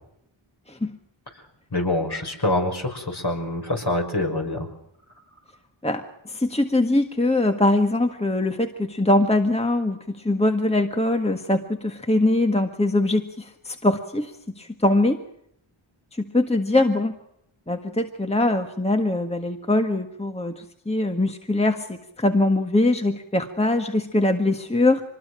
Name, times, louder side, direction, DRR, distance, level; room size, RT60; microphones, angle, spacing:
voice 1, 1.7-4.7, left 1 dB, 50° left, 3 dB, 5.7 m, -25 dB
voice 2, 5.8-15.2 16.2-17.2 17.7-25.0, left 2 dB, 10° left, 5 dB, 1.6 m, -22 dB
25.0 x 20.5 x 6.3 m, 0.74 s
wide cardioid pair, 40°, 49 cm